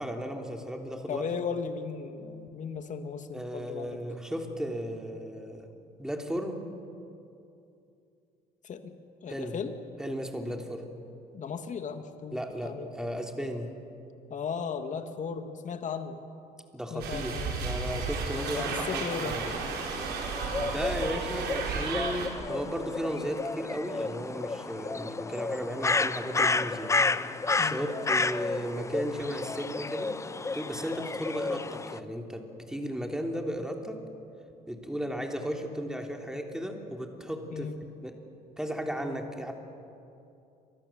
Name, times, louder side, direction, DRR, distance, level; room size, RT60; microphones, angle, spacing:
voice 1, 0.0-1.2 3.3-5.7 6.0-6.6 9.3-9.6 10.0-10.8 12.3-13.7 16.7-19.5 20.6-26.9 27.6-30.1 30.5-34.0 34.7-37.7 38.0-38.1 38.6-39.5, equal, 5° right, 3 dB, 3.2 m, -35 dB
voice 2, 1.1-4.0 8.6-8.9 9.2-9.7 11.3-12.9 14.3-16.2 16.9-17.6 18.5-19.4 27.6-27.9 37.5-37.8, left 6 dB, 45° left, 7 dB, 2.3 m, -36 dB
sound 1, 17.0-22.3, right 4 dB, 75° right, 5.0 m, -33 dB
sound 2, 18.3-32.0, left 3 dB, 15° left, 0.7 m, -32 dB
29.5 x 24.5 x 7.4 m, 2.7 s
cardioid pair, 110°, 17 cm